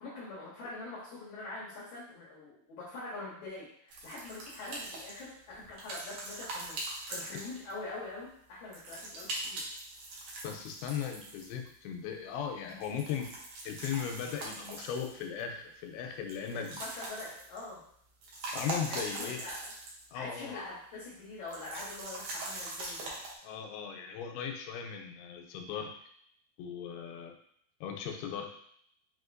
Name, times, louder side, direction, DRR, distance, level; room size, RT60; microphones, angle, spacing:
voice 1, 0.0-9.6 16.5-17.8 18.9-19.7 20.1-23.1, left 2 dB, 65° left, -9 dB, 2.1 m, -44 dB
sound 1, 3.9-7.9 8.7-11.7 12.6-15.4 16.3-17.7 18.1-20.1 20.4-20.5 21.5-23.3, right 2 dB, 90° right, 1.5 m, -42 dB
voice 2, 10.4-13.3 13.7-16.8 18.5-19.4 20.1-20.6 23.4-25.9 26.6-27.3 27.8-28.5, left 8 dB, 90° left, 4 dB, 2.5 m, -38 dB
5.8 x 2.8 x 2.5 m, 0.67 s
omnidirectional pair, 4.4 m